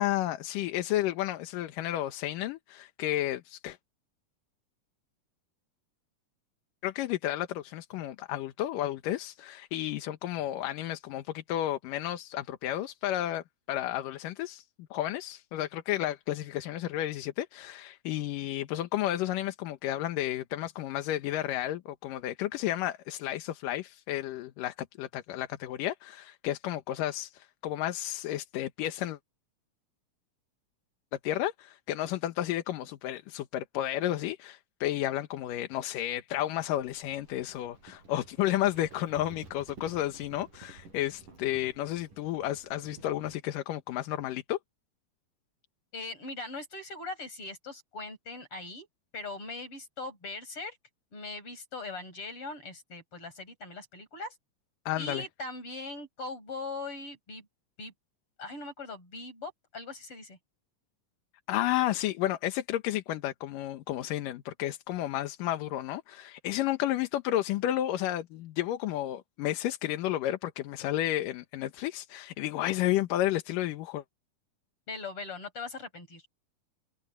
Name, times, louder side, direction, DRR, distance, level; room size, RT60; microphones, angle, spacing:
voice 1, 0.0-3.8 6.8-14.6 14.9-29.2 31.2-44.6 54.9-55.3 61.5-74.0, left 13 dB, 80° left, 2.7 m, -32 dB
Livestock farm animals working animals, 36.8-43.4, right 3 dB, 75° right, 9.0 m, -53 dB
voice 2, 45.9-48.9 49.1-50.8 51.1-54.3 55.0-57.5 57.8-57.9 58.4-60.4 74.9-76.2, left 3 dB, 40° left, 7.8 m, -40 dB
omnidirectional pair, 3.8 m